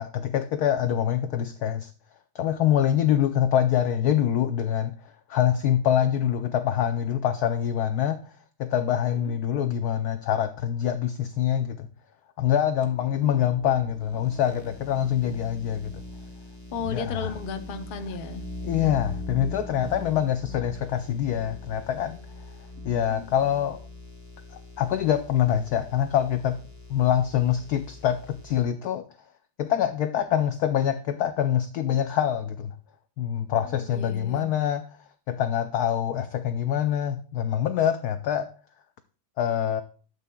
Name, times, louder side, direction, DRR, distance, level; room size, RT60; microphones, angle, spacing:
voice 1, 0.0-1.9 2.3-4.9 5.3-8.2 8.6-11.9 12.4-15.9 16.9-17.3 18.6-22.2 22.8-23.8 24.5-26.6 26.9-29.0 29.6-32.7 33.2-34.8 35.3-38.5 39.4-39.8, left 10 dB, 80° left, 9 dB, 0.8 m, -25 dB
sound 1, 12.8-28.6, left 2 dB, 15° left, 0.8 m, -42 dB
voice 2, 13.2-13.5 16.7-18.4 22.9-23.4 33.6-34.5, left 5 dB, 55° left, 6 dB, 0.6 m, -35 dB
12.0 x 8.0 x 2.3 m, 0.41 s
omnidirectional pair, 2.1 m